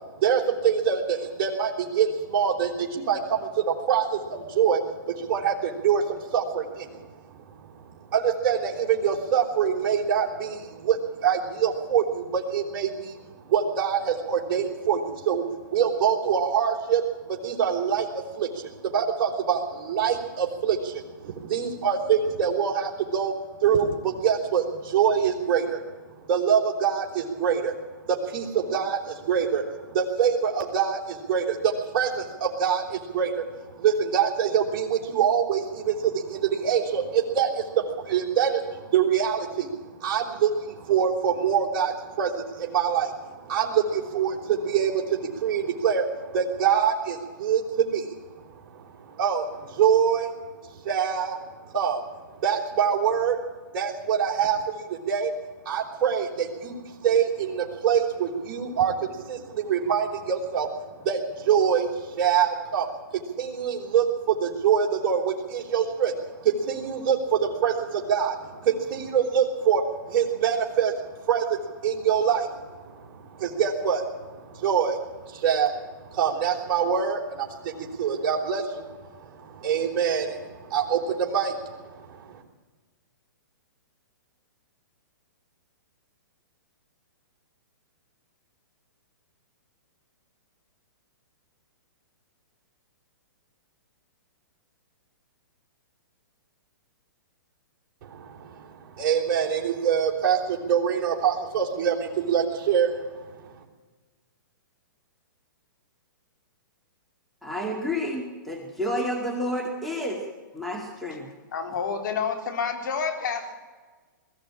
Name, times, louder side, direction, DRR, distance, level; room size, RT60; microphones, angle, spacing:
voice 1, 0.2-7.1 8.1-13.2 13.4-23.3 23.6-25.8 26.3-27.7 28.1-33.4 33.7-39.7 40.0-48.1 48.7-50.3 50.8-51.4 51.7-52.0 52.4-53.4 53.7-55.3 55.7-60.7 61.0-62.9 63.1-70.9 71.3-75.7 76.0-81.5 81.8-82.4 98.0-98.7 99.0-102.9, right 7 dB, 35° right, -2 dB, 3.6 m, -25 dB
voice 2, 107.4-110.2 110.5-111.3, equal, ahead, 0 dB, 2.3 m, -30 dB
voice 3, 111.5-113.5, left 6 dB, 65° left, 6 dB, 3.9 m, -29 dB
20.5 x 14.5 x 8.7 m, 1.3 s
hypercardioid pair, 145°, 11 cm